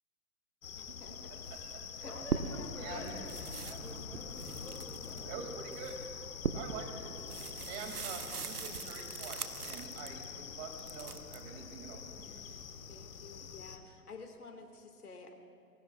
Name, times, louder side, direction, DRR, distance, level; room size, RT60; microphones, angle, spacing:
sound 1, 0.6-13.8, left 6 dB, 60° left, 1.4 m, -46 dB
voice 1, 0.8-1.4 2.0-3.2 12.4-12.6 12.9-15.3, left 3 dB, 80° left, 5 dB, 2.1 m, -50 dB
voice 2, 1.3-2.1 2.4-3.1 5.2-6.0 6.5-7.1 7.7-12.6, right 5 dB, 30° right, 3 dB, 2.4 m, -46 dB
sound 2, 1.4-2.8 3.0-10.3 10.7-11.4, right 6 dB, 90° right, 0.9 m, -41 dB
voice 3, 2.0-5.5 6.4-6.8 7.3-8.3, left 2 dB, 5° left, -3 dB, 3.0 m, -51 dB
26.0 x 19.5 x 2.4 m, 2.7 s
hypercardioid pair, 125°, 45 cm